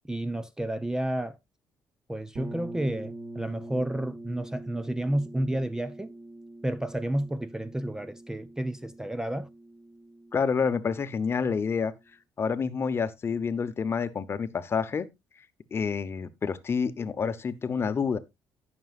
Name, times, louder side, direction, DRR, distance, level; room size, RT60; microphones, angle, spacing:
voice 1, 0.1-1.4 2.1-6.1 6.6-9.5, right 1 dB, 10° right, 0.4 m, -31 dB
sound 1, 2.3-12.0, right 2 dB, 40° right, 1.8 m, -45 dB
voice 2, 10.3-11.9 12.4-15.1 15.7-18.2, left 5 dB, 35° left, 0.8 m, -28 dB
17.0 x 6.1 x 2.4 m
cardioid pair, 110°, 7 cm